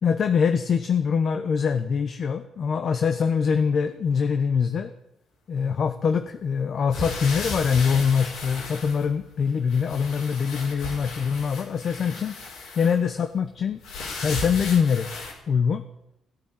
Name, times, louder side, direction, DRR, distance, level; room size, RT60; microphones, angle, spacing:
voice 1, 0.0-4.9 5.5-12.3 12.7-13.8 14.2-15.1 15.5-15.8, left 6 dB, 55° left, 8 dB, 1.1 m, -23 dB
sound 1, 6.9-9.4 9.7-13.0 13.8-15.3, left 3 dB, 85° left, 5.6 m, -35 dB
17.0 x 9.0 x 9.1 m, 0.82 s
cardioid pair, 90°, 0 cm